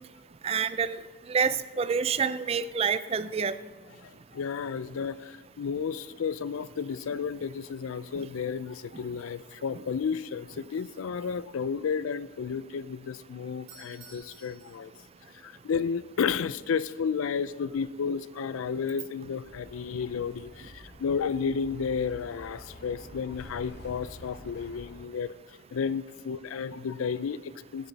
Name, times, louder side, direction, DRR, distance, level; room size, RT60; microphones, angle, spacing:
voice 1, 0.4-1.0 1.3-3.5 8.9-9.0, right 6 dB, 30° right, 14 dB, 0.3 m, -27 dB
voice 2, 4.0-14.9 15.4-25.3 25.7-27.9, left 6 dB, 85° left, 17 dB, 0.4 m, -32 dB
Doorbell, 13.6-15.5, right 3 dB, 70° right, 4.0 m, -53 dB
Bus, 19.4-25.0, equal, 55° left, 2.9 m, -48 dB
15.5 x 7.1 x 4.1 m, 1.3 s
head